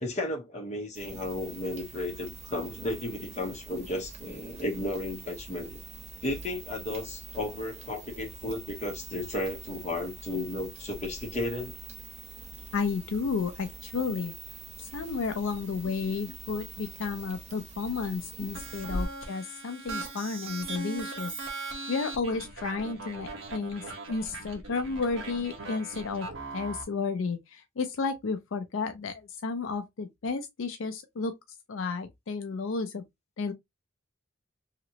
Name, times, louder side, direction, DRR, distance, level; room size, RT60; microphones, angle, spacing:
voice 1, 0.0-5.8 6.2-11.8 18.4-18.5 18.9-19.0, left 1 dB, 35° left, 1.0 m, -34 dB
sound 1, 0.9-19.1, right 2 dB, 35° right, 0.6 m, -44 dB
voice 2, 12.7-14.3 14.8-21.4 21.9-23.8 24.1-31.3 31.7-33.0 33.4-33.5, left 4 dB, 75° left, 0.5 m, -32 dB
sound 2, 18.5-26.8, right 3 dB, 70° right, 1.0 m, -40 dB
3.0 x 2.9 x 2.7 m
head